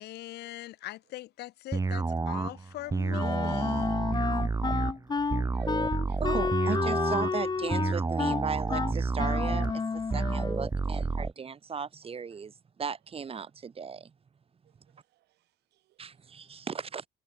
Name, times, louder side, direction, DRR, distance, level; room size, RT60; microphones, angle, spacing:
voice 1, 0.0-4.0 4.5-4.7, left 16 dB, 80° left, 3.8 m, -42 dB
sound 1, 1.7-11.3, right 4 dB, 20° right, 1.5 m, -30 dB
Wind instrument woodwind instrument, 3.1-10.7, left 4 dB, 25° left, 1.9 m, -31 dB
voice 2, 5.4-5.8 6.1-6.2 10.9-11.0 14.9-16.2, right 16 dB, 80° right, 3.9 m, -63 dB
voice 3, 6.2-14.1 14.9-15.0 16.0-17.1, right 6 dB, 35° right, 4.7 m, -37 dB
cardioid pair, 110°, 17 cm